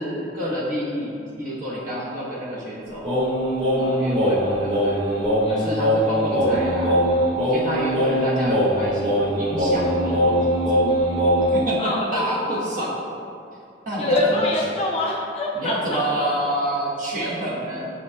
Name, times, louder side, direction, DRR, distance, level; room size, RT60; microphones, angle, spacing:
voice 1, 0.0-3.1 3.7-5.0 5.5-7.0 7.3-10.8 11.5-12.9 13.9-14.4 15.5-17.9, right 1 dB, 50° right, -7 dB, 0.9 m, -28 dB
Singing, 3.0-11.6, equal, 80° right, 1.4 m, -21 dB
voice 2, 11.8-12.3 14.0-16.3, left 2 dB, 35° left, -2 dB, 0.5 m, -25 dB
6.1 x 2.9 x 2.2 m, 2.5 s
head